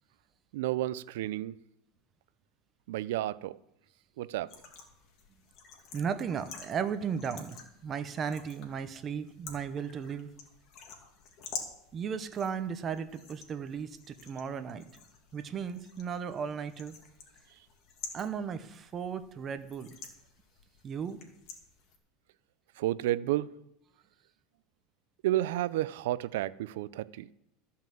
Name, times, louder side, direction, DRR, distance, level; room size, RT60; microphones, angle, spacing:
voice 1, 0.5-1.6 2.9-3.6 4.2-4.5 22.8-23.5 25.2-27.3, right 14 dB, 80° right, 0.4 m, -31 dB
sound 1, 4.5-22.0, left 6 dB, 50° left, 2.4 m, -49 dB
voice 2, 5.9-10.3 11.9-14.8 15.3-16.9 18.1-19.9 20.8-21.2, right 7 dB, 30° right, 0.9 m, -35 dB
14.5 x 5.6 x 7.6 m
supercardioid pair, 135°, 0 cm